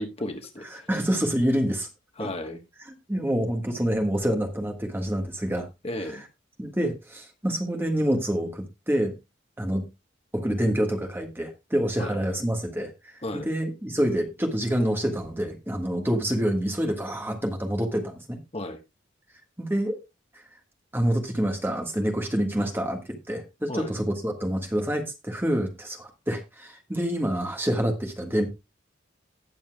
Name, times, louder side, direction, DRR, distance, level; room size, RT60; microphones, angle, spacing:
voice 1, 0.0-0.9 2.2-2.6 5.8-6.2 12.0-12.2 13.2-13.5 18.5-18.8 23.7-23.9, left 1 dB, 30° left, 6 dB, 1.2 m, -33 dB
voice 2, 0.7-1.9 2.2-2.3 3.1-5.7 6.1-6.2 6.6-9.1 9.6-9.9 10.3-12.9 13.3-18.4 19.6-20.0 20.9-28.5, equal, 10° right, 4 dB, 1.6 m, -27 dB
19.0 x 7.1 x 2.3 m, 0.23 s
head